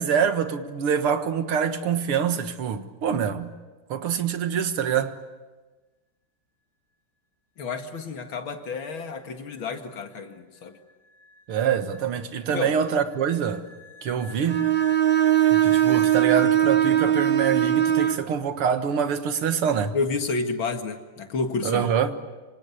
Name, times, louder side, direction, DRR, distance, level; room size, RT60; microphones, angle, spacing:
voice 1, 0.0-3.5 3.9-5.2 11.5-13.7 14.0-14.7 15.5-20.0 21.6-22.1, right 7 dB, 80° right, 2.4 m, -25 dB
voice 2, 7.6-10.8 12.5-12.7 19.9-21.9, left 4 dB, 65° left, 2.7 m, -30 dB
sound 1, 9.3-16.2, left 2 dB, ahead, 3.8 m, -47 dB
Bowed string instrument, 14.5-18.3, right 11 dB, 40° right, 0.8 m, -20 dB
26.5 x 26.0 x 8.4 m
omnidirectional pair, 2.4 m